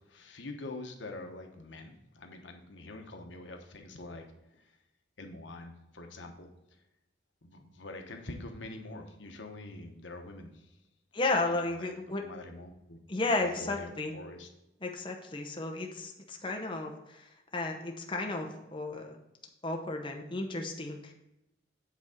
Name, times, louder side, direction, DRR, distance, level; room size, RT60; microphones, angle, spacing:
voice 1, 0.0-4.2 4.5-4.7 5.2-6.5 7.4-10.8 11.6-13.0 13.4-14.5, left 2 dB, 85° left, 4 dB, 1.0 m, -45 dB
voice 2, 11.1-12.2 13.1-14.1 14.8-19.2 19.6-21.1, left 2 dB, 25° left, 2 dB, 0.8 m, -33 dB
8.1 x 3.6 x 6.4 m, 0.93 s
head